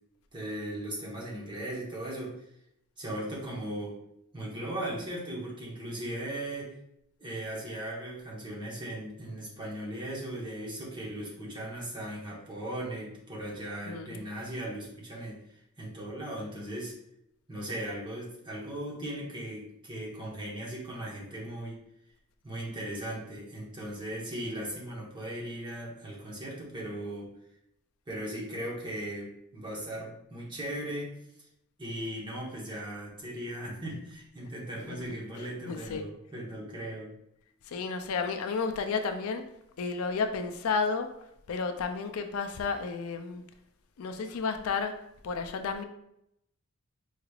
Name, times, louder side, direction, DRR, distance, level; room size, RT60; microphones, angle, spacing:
voice 1, 0.3-2.4 3.0-4.0 4.3-6.7 7.2-15.4 15.8-16.9 17.5-21.8 22.4-27.3 28.1-31.1 31.4-31.5 31.8-37.1, right 1 dB, 20° right, -4 dB, 1.1 m, -38 dB
voice 2, 13.9-14.2 34.9-35.0 35.4-36.1 37.7-39.4 39.8-41.1 41.5-43.4 44.0-44.9 45.2-45.8, left 5 dB, 70° left, 7 dB, 0.4 m, -32 dB
4.8 x 3.2 x 2.3 m, 0.79 s
head